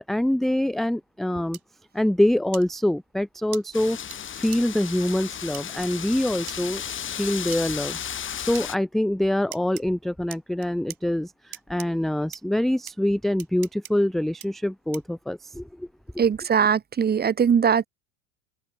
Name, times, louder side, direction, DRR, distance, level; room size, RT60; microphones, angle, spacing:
voice 1, 0.0-1.6 1.9-4.0 4.4-6.8 7.2-15.9, left 1 dB, ahead, 0.4 m, -25 dB
sound 1, 1.5-1.6 2.5-2.6 3.5-3.6 4.1-4.2 4.5-4.6 5.5-5.6 6.5-6.6 7.5-7.6 8.5-8.7 9.5-9.8 10.3-11.0 11.5-11.9 12.3-12.4 12.9-13.0 13.4-13.9 14.4-14.5 14.9-15.2, right 11 dB, 90° right, 4.3 m, -39 dB
Wind, 3.7-8.8, left 9 dB, 30° left, 1.8 m, -34 dB
voice 2, 16.2-17.9, right 7 dB, 25° right, 1.6 m, -21 dB
hypercardioid pair, 95°, 42 cm